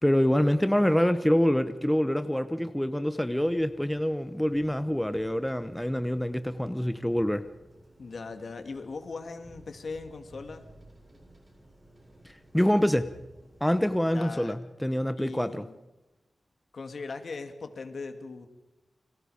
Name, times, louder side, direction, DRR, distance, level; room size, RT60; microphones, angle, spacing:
voice 1, 0.0-7.5 12.5-13.1 13.6-15.6, equal, 5° left, 11 dB, 0.9 m, -26 dB
sound 1, 3.3-13.9, right 1 dB, 30° right, 7.5 m, -55 dB
voice 2, 8.0-10.7 14.1-14.6 15.2-15.8 16.7-18.5, left 4 dB, 65° left, 7 dB, 2.6 m, -39 dB
30.0 x 25.0 x 5.1 m, 1.0 s
wide cardioid pair, 115°, 0 cm